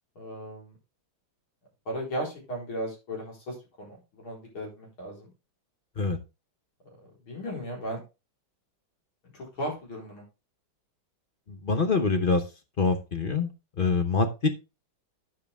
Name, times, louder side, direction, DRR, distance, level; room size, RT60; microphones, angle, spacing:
voice 1, 0.2-0.7 1.9-5.3 7.3-8.0 9.3-10.2, equal, 85° left, -1 dB, 5.2 m, -36 dB
voice 2, 11.5-12.4 12.8-13.5 13.8-14.5, left 4 dB, 45° left, 8 dB, 0.6 m, -25 dB
9.6 x 7.2 x 3.5 m, 0.27 s
omnidirectional pair, 2.2 m